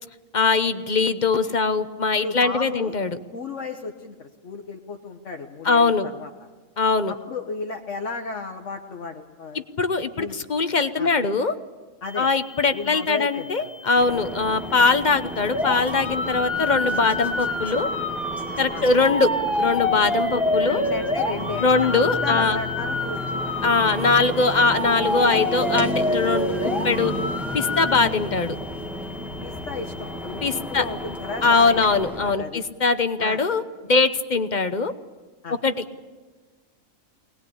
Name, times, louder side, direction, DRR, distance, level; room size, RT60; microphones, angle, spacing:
voice 1, 0.3-3.2 5.6-6.1 6.8-7.1 9.5-11.5 12.2-17.9 18.6-19.3 19.6-20.8 21.6-22.6 23.6-27.1 27.5-28.6 30.4-30.8 31.4-33.6 33.9-34.9 35.6-35.7, left 4 dB, 40° left, 10 dB, 0.9 m, -21 dB
voice 2, 2.2-2.9 3.3-6.5 7.1-9.6 10.2-10.4 11.0-11.1 12.0-12.3 12.7-13.7 14.5-14.6 18.7-18.8 20.7-23.6 29.4-32.6 33.2-33.4 35.4-35.6, left 4 dB, 65° left, 2 dB, 1.5 m, -34 dB
sound 1, 12.0-32.0, left 3 dB, 80° left, 2.1 m, -45 dB
sound 2, 14.0-32.3, equal, ahead, 1.8 m, -33 dB
sound 3, 15.5-28.0, left 2 dB, 20° left, 2.3 m, -27 dB
22.5 x 19.5 x 8.5 m, 1.3 s
omnidirectional pair, 1.4 m